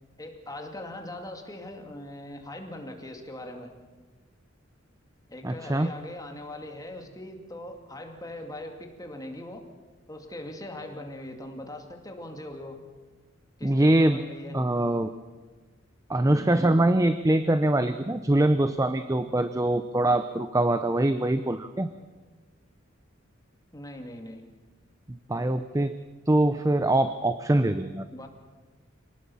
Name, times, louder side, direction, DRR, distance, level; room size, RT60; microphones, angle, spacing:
voice 1, 0.2-3.7 5.3-9.6 10.1-12.8 13.6-14.6 23.7-24.4 28.1-28.3, left 1 dB, 20° left, 3 dB, 2.4 m, -40 dB
voice 2, 5.4-5.9 13.6-14.2 14.5-15.1 16.1-21.9 25.1-26.0 26.3-28.0, right 1 dB, 15° right, 10 dB, 0.6 m, -23 dB
25.0 x 18.5 x 7.1 m, 1.3 s
head